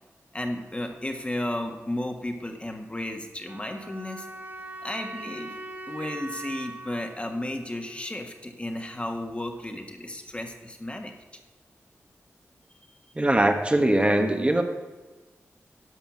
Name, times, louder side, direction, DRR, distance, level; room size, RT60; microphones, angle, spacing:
voice 1, 0.3-4.3 4.8-5.6 5.9-11.1, left 1 dB, 20° left, 4 dB, 1.5 m, -33 dB
sound 1, 3.4-8.5, right 2 dB, 40° right, 2.4 m, -41 dB
voice 2, 13.2-14.6, right 1 dB, 20° right, 4 dB, 1.1 m, -21 dB
11.0 x 5.7 x 7.5 m, 1.2 s
cardioid pair, 55°, 5 cm